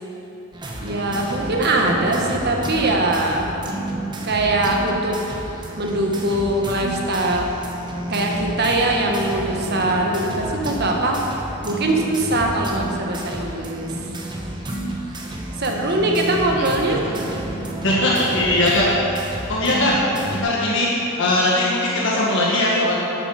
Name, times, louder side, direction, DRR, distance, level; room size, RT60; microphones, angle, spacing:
sound 1, 0.5-20.4, right 1 dB, 20° right, 1.0 m, -30 dB
voice 1, 0.8-3.5 4.2-5.2 5.7-7.5 8.1-11.2 11.6-13.9 15.6-17.0, right 2 dB, 50° right, 1 dB, 1.3 m, -22 dB
voice 2, 17.8-18.9 19.5-20.0 20.3-22.9, left 1 dB, 60° left, -5 dB, 1.5 m, -20 dB
11.5 x 6.9 x 5.6 m, 3.0 s
head